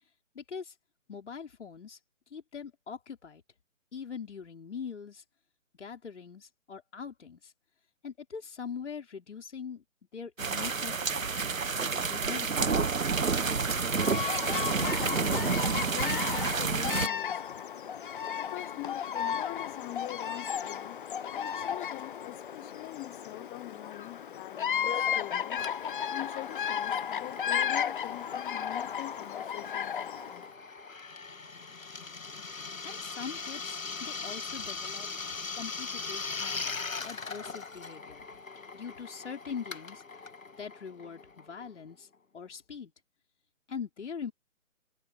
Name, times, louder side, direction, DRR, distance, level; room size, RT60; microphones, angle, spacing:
voice 1, 0.3-0.7 1.1-2.0 2.3-3.4 3.9-5.2 5.8-7.5 8.0-9.8 10.1-12.8 32.8-35.1 35.5-36.6 37.0-38.3 38.7-40.0 40.6-42.1 42.3-42.9 43.7-44.3, left 6 dB, 60° left, 5.0 m, -42 dB
sound 1, 10.4-17.1, right 5 dB, 80° right, 1.5 m, -29 dB
Bird vocalization bird call bird song, 13.2-30.4, left 8 dB, 40° left, 1.2 m, -34 dB
voice 2, 14.7-17.6 18.3-21.0 21.3-25.7 26.1-30.5, left 27 dB, 10° left, 0.9 m, -44 dB
Drill, 25.6-41.9, left 4 dB, 80° left, 1.8 m, -41 dB
figure-of-eight pair, 145°, 40 cm